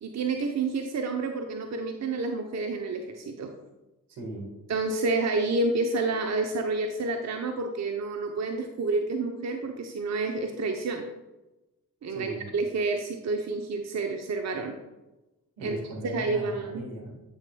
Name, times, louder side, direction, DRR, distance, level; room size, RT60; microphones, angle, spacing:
voice 1, 0.0-3.5 4.7-11.0 12.0-14.8 15.6-15.8 16.1-16.8, right 3 dB, 40° right, 4 dB, 0.8 m, -29 dB
voice 2, 4.1-4.5 12.1-12.5 15.6-17.1, right 1 dB, 75° right, 0 dB, 1.7 m, -38 dB
8.9 x 6.3 x 2.3 m, 1.0 s
hypercardioid pair, 40°, 41 cm